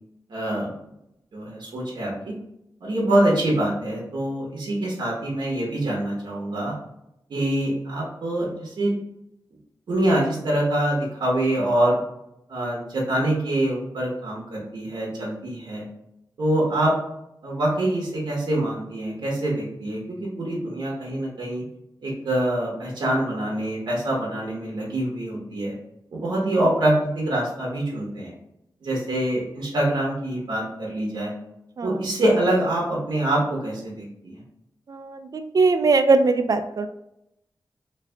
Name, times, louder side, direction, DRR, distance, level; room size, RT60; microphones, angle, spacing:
voice 1, 0.3-0.7 1.3-2.3 2.8-6.7 7.3-8.9 9.9-12.0 12.5-15.8 16.4-16.9 17.4-21.6 22.0-25.7 26.1-28.3 28.8-31.3 31.8-34.4, right 1 dB, 85° right, -4 dB, 1.1 m, -25 dB
voice 2, 35.3-36.9, right 3 dB, 55° right, 8 dB, 0.4 m, -20 dB
3.4 x 3.3 x 3.4 m, 0.82 s
wide cardioid pair, 100°, 8 cm